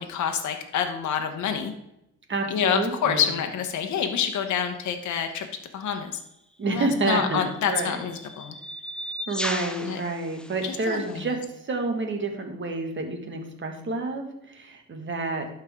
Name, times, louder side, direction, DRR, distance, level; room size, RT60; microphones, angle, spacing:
voice 1, 0.0-1.7 2.5-5.5 5.7-6.2 6.7-8.6 9.8-10.0 10.7-11.2, left 8 dB, 70° left, 5 dB, 1.0 m, -27 dB
voice 2, 2.3-3.3 6.6-8.0 9.3-15.5, right 3 dB, 40° right, 4 dB, 1.7 m, -29 dB
sound 1, 5.8-6.0 7.0-11.2, equal, 5° left, 0.6 m, -37 dB
11.5 x 4.5 x 3.6 m, 0.84 s
cardioid pair, 90°, 30 cm